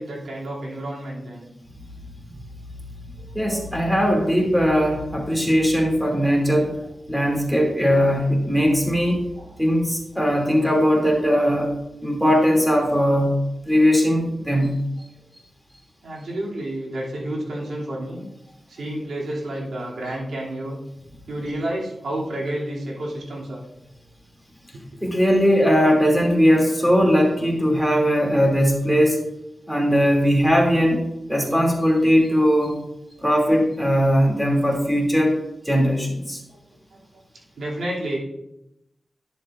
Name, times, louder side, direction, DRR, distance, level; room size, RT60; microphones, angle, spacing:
voice 1, 0.0-1.5 3.4-4.0 9.3-9.5 16.0-18.2 18.7-20.8 21.3-23.6 36.5-36.6 36.9-37.0 37.6-38.2, right 1 dB, 90° right, -4 dB, 2.7 m, -30 dB
voice 2, 3.3-6.7 7.1-9.2 9.6-11.7 12.0-13.3 13.7-14.7 25.0-29.2 29.7-31.0 31.3-32.8 33.2-35.4 35.6-36.4, equal, 5° right, 0 dB, 2.6 m, -19 dB
11.0 x 7.2 x 2.5 m, 0.85 s
cardioid pair, 60°, 0 cm